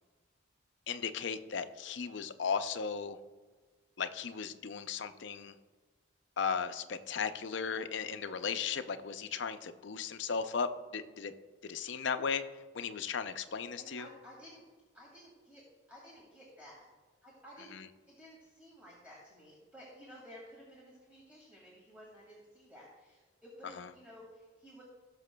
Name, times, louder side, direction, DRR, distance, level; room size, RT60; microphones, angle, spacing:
voice 1, 0.9-3.2 4.0-5.5 6.4-11.3 11.7-12.4 12.7-14.1 23.8-23.9, left 6 dB, 60° left, 10 dB, 0.5 m, -36 dB
voice 2, 13.8-14.6 14.9-16.9 17.2-17.8 18.1-24.8, equal, 5° right, -5 dB, 2.0 m, -54 dB
18.5 x 6.4 x 2.2 m, 1.4 s
head